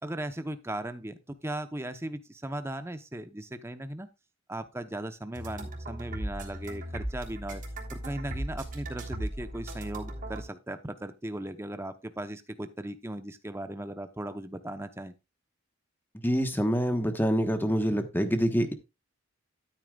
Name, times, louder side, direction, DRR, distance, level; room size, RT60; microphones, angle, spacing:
voice 1, 0.0-4.1 4.5-7.6 7.9-15.1, right 1 dB, 15° right, 0.8 m, -37 dB
sound 1, 5.3-10.4, right 1 dB, 40° right, 3.4 m, -37 dB
voice 2, 16.2-18.7, equal, 10° left, 1.2 m, -26 dB
13.0 x 8.8 x 2.4 m
head